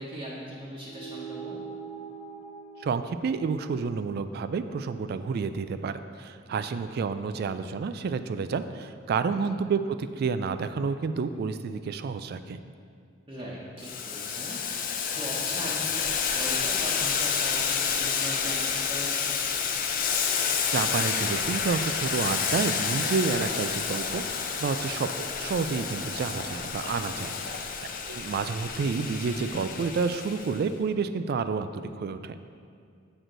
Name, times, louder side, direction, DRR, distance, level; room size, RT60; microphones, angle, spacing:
voice 1, 0.0-1.6 6.7-6.8 9.3-9.5 13.3-19.4 27.0-27.3, equal, 25° right, -7 dB, 1.0 m, -40 dB
sound 1, 0.8-5.7, right 5 dB, 5° left, 1.2 m, -44 dB
voice 2, 2.8-12.6 20.7-27.7 28.1-32.4, right 5 dB, 55° right, 11 dB, 0.3 m, -30 dB
Boiling, 13.8-30.6, left 6 dB, 45° left, 0.5 m, -29 dB
7.9 x 6.2 x 3.9 m, 2.2 s
head